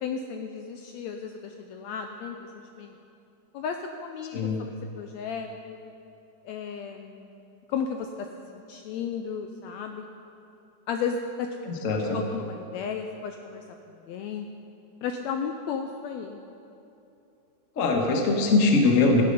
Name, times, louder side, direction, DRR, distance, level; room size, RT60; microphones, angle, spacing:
voice 1, 0.0-2.5 2.8-3.0 3.5-5.8 6.4-7.4 7.7-10.0 10.9-11.5 12.1-14.5 15.0-16.4, left 6 dB, 85° left, 5 dB, 1.6 m, -34 dB
voice 2, 11.7-12.2 17.8-19.2, left 3 dB, 65° left, 1 dB, 0.7 m, -22 dB
15.5 x 9.9 x 5.4 m, 2.8 s
omnidirectional pair, 3.7 m